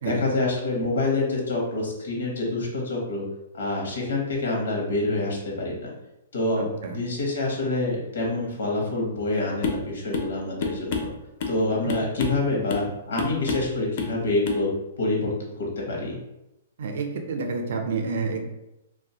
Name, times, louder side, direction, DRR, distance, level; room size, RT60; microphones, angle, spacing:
voice 1, 0.0-3.2 3.5-5.9 6.3-6.6 6.9-11.1 11.5-14.7 15.0-15.3 15.6-16.2, left 2 dB, 85° left, -1 dB, 0.8 m, -26 dB
voice 2, 6.6-7.0 11.8-11.9 16.8-18.5, right 4 dB, 55° right, 4 dB, 0.4 m, -29 dB
sound 1, 9.6-9.9 10.1-10.3 10.6-11.6 11.9-12.4 12.7-12.9 13.2-13.7 14.0-14.2 14.5-14.6, left 4 dB, 35° left, 0.4 m, -29 dB
2.4 x 2.1 x 2.7 m, 0.91 s
hypercardioid pair, 175°, 0 cm